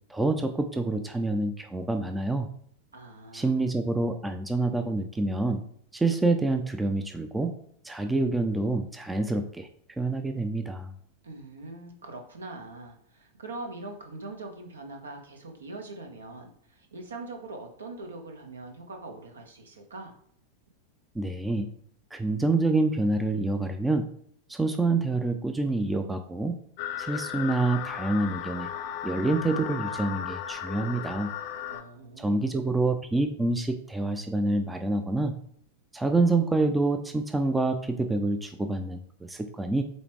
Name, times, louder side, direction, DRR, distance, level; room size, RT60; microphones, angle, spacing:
voice 1, 0.1-2.5 3.3-5.6 5.9-7.5 7.8-9.7 10.0-10.9 21.1-21.7 22.1-24.1 24.5-26.5 27.0-28.7 29.0-31.3 32.2-35.3 35.9-39.8, right 2 dB, 10° right, 7 dB, 0.6 m, -27 dB
voice 2, 2.9-3.7 11.2-20.2 31.7-32.6, right 2 dB, 70° right, 3 dB, 1.5 m, -42 dB
sound 1, 26.8-31.8, left 10 dB, 45° left, 0.7 m, -35 dB
7.9 x 3.3 x 4.8 m, 0.63 s
figure-of-eight pair, 90°, 0 cm